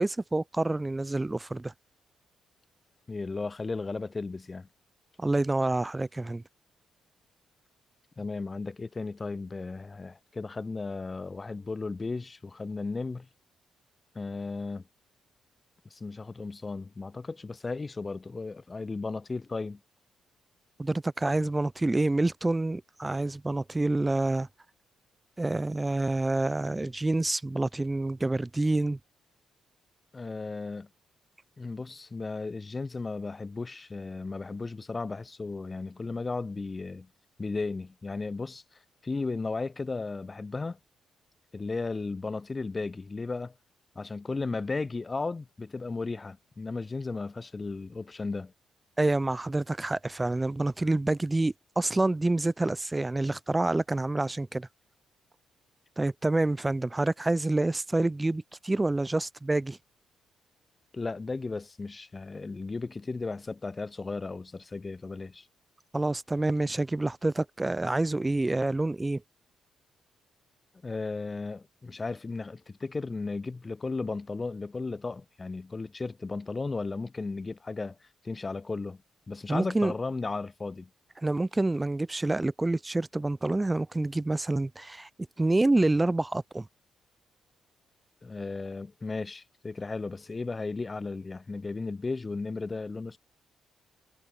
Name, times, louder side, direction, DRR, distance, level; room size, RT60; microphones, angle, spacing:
voice 1, 0.0-1.7 5.2-6.4 20.8-24.5 25.4-29.0 49.0-54.7 56.0-59.8 65.9-69.2 79.5-79.9 81.2-85.1 85.4-86.7, right 2 dB, 15° right, 0.7 m, -27 dB
voice 2, 3.1-4.7 8.2-13.3 14.1-14.8 15.9-19.8 30.1-30.9 31.6-37.1 37.4-38.6 39.0-40.8 41.5-43.5 44.0-48.5 60.9-65.5 70.8-79.0 79.3-80.9 88.2-93.2, left 3 dB, 30° left, 2.0 m, -35 dB
cardioid pair, 80°, 0 cm